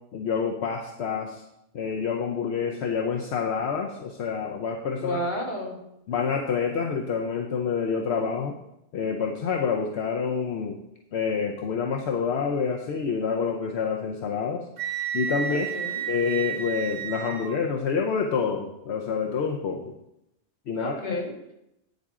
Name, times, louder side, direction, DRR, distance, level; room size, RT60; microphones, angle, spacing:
voice 1, 0.1-1.4 1.7-5.2 6.1-8.6 8.9-10.8 11.1-14.7 15.1-15.7 16.1-19.9 20.7-20.9, left 6 dB, 70° left, 2 dB, 1.0 m, -27 dB
voice 2, 5.0-5.8 15.5-16.0 20.7-21.5, left 1 dB, 45° left, -1 dB, 1.8 m, -32 dB
Wind instrument woodwind instrument, 14.8-17.6, right 8 dB, 70° right, 1.1 m, -31 dB
8.6 x 7.8 x 3.7 m, 0.84 s
omnidirectional pair, 1.1 m